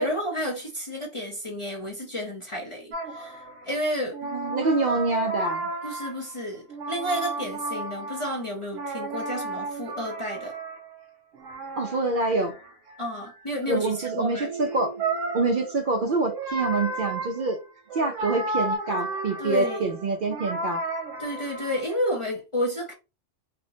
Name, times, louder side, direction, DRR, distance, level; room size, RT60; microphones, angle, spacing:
voice 1, 0.0-4.2 5.8-10.6 13.0-14.5 19.4-19.9 21.2-22.9, equal, 35° left, 0.6 m, -31 dB
sound 1, 2.9-3.8 4.1-6.4 6.7-11.0 11.3-22.0, right 3 dB, 85° right, 1.2 m, -33 dB
voice 2, 4.3-5.7 11.8-12.5 13.7-14.9 15.3-17.6 17.9-20.8, right 3 dB, 55° right, 0.6 m, -26 dB
4.3 x 2.1 x 2.6 m
omnidirectional pair, 1.2 m